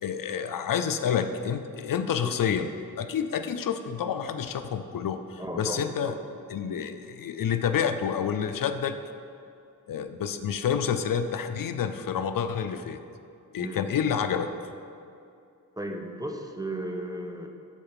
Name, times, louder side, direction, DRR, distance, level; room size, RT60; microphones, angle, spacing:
voice 1, 0.0-2.7 3.0-6.1 6.5-9.0 9.9-13.0 13.5-14.5, left 7 dB, 75° left, 9 dB, 0.5 m, -28 dB
voice 2, 2.2-2.5 5.4-6.2 13.6-13.8 15.7-17.5, right 1 dB, 10° right, 3 dB, 0.8 m, -35 dB
9.0 x 3.9 x 5.7 m, 2.6 s
wide cardioid pair, 65°, 34 cm